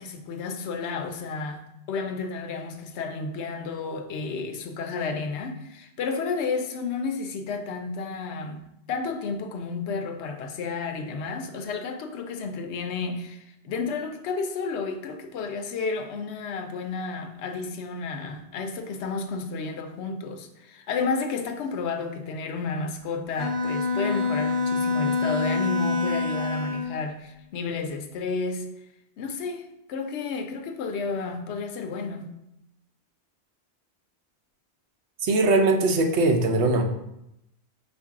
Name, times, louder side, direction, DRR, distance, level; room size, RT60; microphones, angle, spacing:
voice 1, 0.0-28.7 29.2-32.3, left 4 dB, 85° left, 0.9 m, -32 dB
Bowed string instrument, 23.4-27.0, left 4 dB, 40° right, 1.1 m, -26 dB
voice 2, 35.2-36.8, right 2 dB, 85° right, 0.9 m, -21 dB
5.2 x 2.6 x 3.6 m
omnidirectional pair, 1.1 m